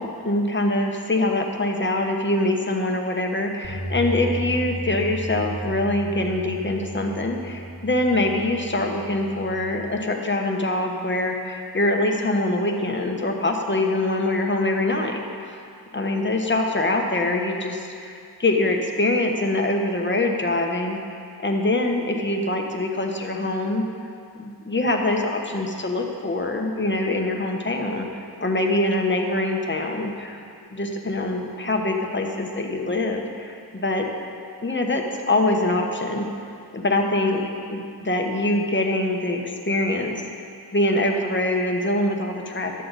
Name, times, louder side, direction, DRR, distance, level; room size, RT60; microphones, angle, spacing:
voice 1, 0.0-15.6 15.9-21.0 21.4-23.9 24.4-30.4 30.7-34.1 34.6-36.3 36.7-37.4 37.7-39.4 39.7-40.1 40.7-42.8, left 2 dB, 30° left, 2 dB, 1.0 m, -24 dB
sound 1, 3.6-9.9, right 1 dB, ahead, 1.8 m, -34 dB
11.5 x 7.6 x 4.0 m, 2.5 s
wide cardioid pair, 65°, 40 cm